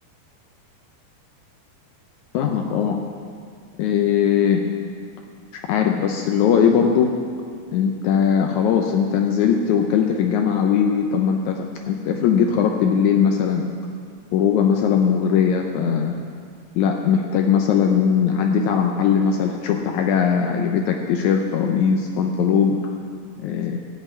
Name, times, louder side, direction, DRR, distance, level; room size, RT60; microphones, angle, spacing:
voice 1, 2.3-3.0 3.8-4.6 5.7-7.1 7.7-13.7 14.3-16.1 16.8-22.8 23.4-23.8, left 7 dB, 75° left, 3 dB, 2.0 m, -20 dB
13.5 x 5.7 x 8.5 m, 2.2 s
omnidirectional pair, 3.7 m